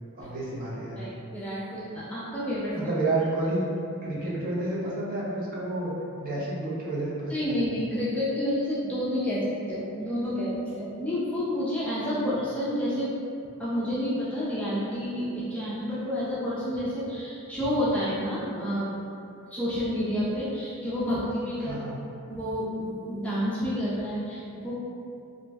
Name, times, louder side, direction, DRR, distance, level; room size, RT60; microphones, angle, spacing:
voice 1, 0.2-1.0 2.7-3.7 4.0-5.9 6.2-7.6 21.6-22.1, right 2 dB, 40° right, -7 dB, 0.6 m, -30 dB
voice 2, 1.0-2.7 7.3-13.1 13.6-18.9 19.5-21.8 22.3-24.7, equal, 5° left, -10 dB, 0.3 m, -29 dB
2.5 x 2.0 x 3.4 m, 2.6 s
head